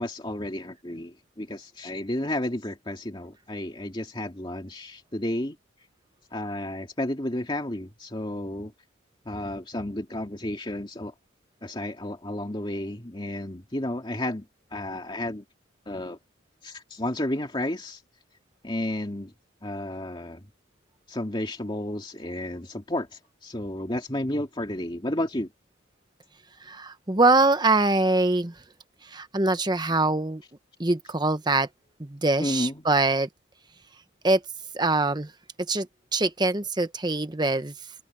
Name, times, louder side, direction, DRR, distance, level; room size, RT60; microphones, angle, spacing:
voice 1, 0.0-5.6 6.3-8.7 9.3-11.1 11.6-14.5 14.7-15.4 15.9-16.2 16.6-18.0 18.6-19.3 19.6-20.4 21.1-25.5 32.4-32.9, left 1 dB, 25° left, 2.4 m, -32 dB
voice 2, 26.7-28.5 29.1-30.4 30.8-31.7 32.0-33.3 34.2-34.4 34.7-35.3 35.7-35.9 36.1-37.7, right 2 dB, 20° right, 1.0 m, -23 dB
open air
head